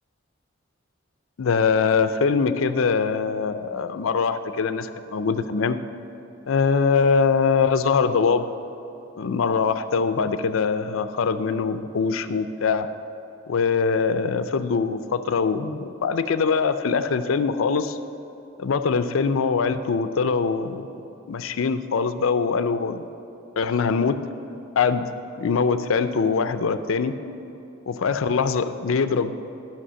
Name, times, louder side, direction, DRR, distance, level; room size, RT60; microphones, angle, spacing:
voice 1, 1.4-5.8 6.5-8.5 9.2-12.9 13.5-18.0 18.6-20.9 21.3-23.0 23.6-24.2 24.8-25.0 25.4-27.1 27.9-29.3, left 5 dB, 85° left, 11 dB, 0.5 m, -23 dB
11.5 x 5.9 x 7.5 m, 2.9 s
head